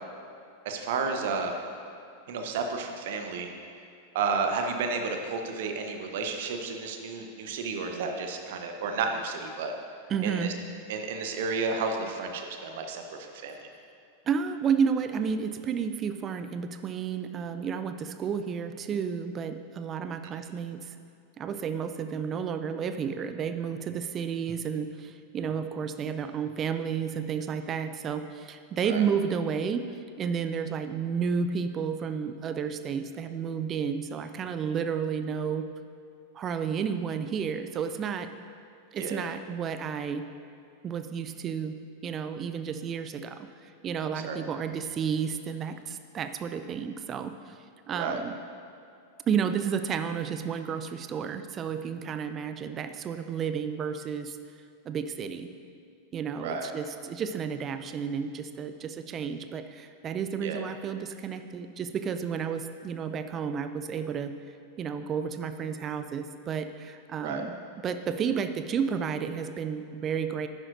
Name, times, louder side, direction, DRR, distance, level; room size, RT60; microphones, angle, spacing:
voice 1, 0.6-1.6 2.3-3.5 4.1-9.7 10.2-10.5 10.9-13.0 13.4-13.7 20.2-20.3 28.8-29.0 39.0-39.2 44.2-44.4 47.9-48.2 56.4-56.7 60.4-60.6 67.2-67.5, right 4 dB, 55° right, 4 dB, 0.9 m, -32 dB
voice 2, 10.1-10.5 14.3-21.0 21.4-29.8 30.2-35.6 36.3-38.3 38.9-40.2 40.8-41.7 42.0-43.5 43.8-47.5 47.9-48.4 49.3-54.4 54.8-55.5 56.1-64.4 64.8-67.6 67.8-70.5, right 7 dB, 30° right, 9 dB, 0.5 m, -31 dB
10.5 x 10.0 x 2.6 m, 2.5 s
figure-of-eight pair, 90°, 0 cm